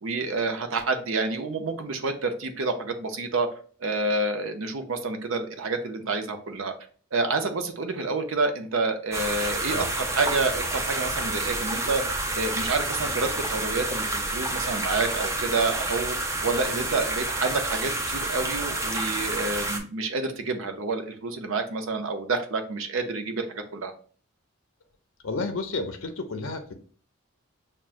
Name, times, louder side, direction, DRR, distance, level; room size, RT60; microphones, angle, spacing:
voice 1, 0.0-3.5 3.8-6.7 7.1-23.9, right 3 dB, 65° right, 6 dB, 0.6 m, -28 dB
sound 1, 9.1-19.8, right 2 dB, 15° right, 0.4 m, -29 dB
voice 2, 25.2-26.7, left 3 dB, 65° left, 6 dB, 0.5 m, -31 dB
5.9 x 2.2 x 2.5 m, 0.42 s
head